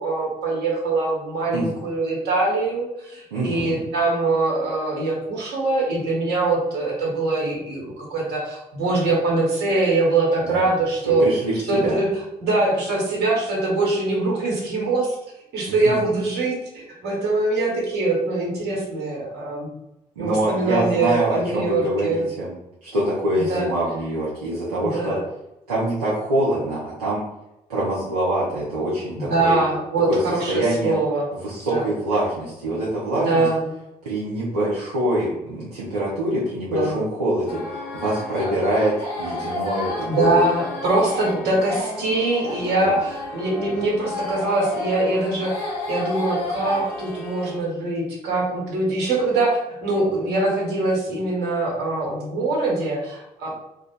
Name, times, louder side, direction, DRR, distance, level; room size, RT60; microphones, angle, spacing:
voice 1, 0.0-11.2 11.7-12.1 12.4-15.2 15.5-19.7 20.2-22.3 23.4-23.7 24.8-25.2 29.1-31.3 31.7-31.9 33.2-33.6 36.7-37.0 40.0-53.5, right 2 dB, 55° right, -3 dB, 1.1 m, -23 dB
voice 2, 3.3-3.8 10.4-10.6 11.0-12.0 15.7-15.9 20.2-22.5 22.8-25.2 25.7-27.2 27.7-29.6 30.1-30.2 30.5-31.0 31.3-33.5 34.0-37.6 37.9-40.4 42.8-42.9, right 1 dB, 80° right, -8 dB, 0.6 m, -24 dB
sound 1, 37.5-47.6, left 2 dB, 65° left, 1.2 m, -31 dB
2.6 x 2.3 x 3.8 m, 0.91 s
figure-of-eight pair, 45°, 19 cm